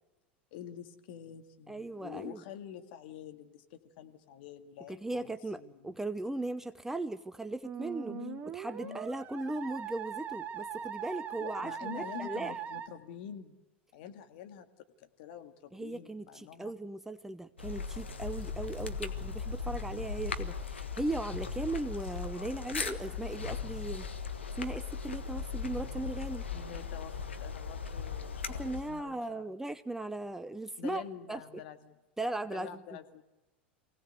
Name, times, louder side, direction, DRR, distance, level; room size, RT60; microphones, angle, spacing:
voice 1, 0.5-5.9 8.1-8.4 8.8-9.0 11.4-13.6 13.9-14.7 15.0-16.7 26.5-29.4 30.8-32.0 32.5-33.2, left 9 dB, 60° left, 7 dB, 2.0 m, -47 dB
voice 2, 1.7-2.4 4.9-8.2 8.5-12.5 15.7-24.1 24.6-26.4 28.5-31.0 31.3-31.4 32.2-32.8, right 2 dB, 5° right, 11 dB, 0.7 m, -38 dB
Musical instrument, 7.6-12.9, right 8 dB, 30° right, 2.1 m, -40 dB
sound 1, 17.6-29.0, left 5 dB, 85° left, 1.5 m, -38 dB
24.0 x 17.5 x 8.0 m, 1.1 s
hypercardioid pair, 90°, 6 cm